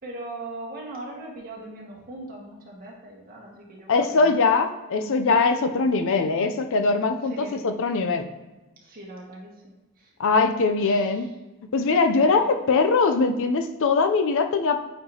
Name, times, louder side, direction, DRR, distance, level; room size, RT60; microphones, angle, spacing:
voice 1, 0.0-4.4 7.2-7.7 8.8-10.1 10.8-11.3 12.3-12.8, right 2 dB, 45° right, -3 dB, 1.7 m, -40 dB
voice 2, 3.9-8.3 10.2-11.3 11.7-14.9, left 4 dB, 60° left, 8 dB, 0.5 m, -21 dB
8.6 x 4.4 x 2.8 m, 1.1 s
head